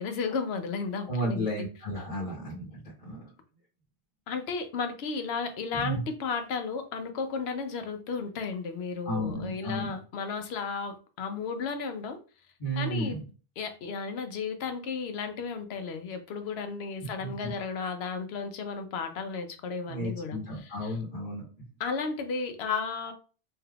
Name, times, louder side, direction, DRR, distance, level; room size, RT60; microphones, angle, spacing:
voice 1, 0.0-1.7 2.2-2.3 4.3-12.2 12.7-13.2 13.6-21.0 21.8-23.1, left 5 dB, 80° left, 0.8 m, -34 dB
voice 2, 1.1-3.2 5.7-6.0 9.0-9.9 12.6-13.2 17.2-17.5 19.9-21.4, right 1 dB, 50° left, 1.0 m, -33 dB
3.4 x 2.7 x 2.3 m
omnidirectional pair, 1.1 m